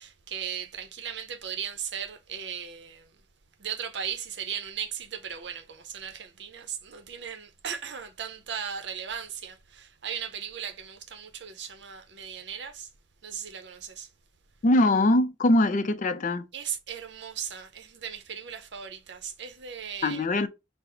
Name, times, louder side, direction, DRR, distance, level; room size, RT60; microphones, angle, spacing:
voice 1, 0.0-3.2 3.6-12.9 13.2-14.1 16.5-20.2, right 8 dB, 70° right, 0.7 m, -37 dB
voice 2, 14.6-16.5 20.0-20.5, left 1 dB, 45° left, 0.4 m, -22 dB
3.9 x 2.0 x 4.3 m
head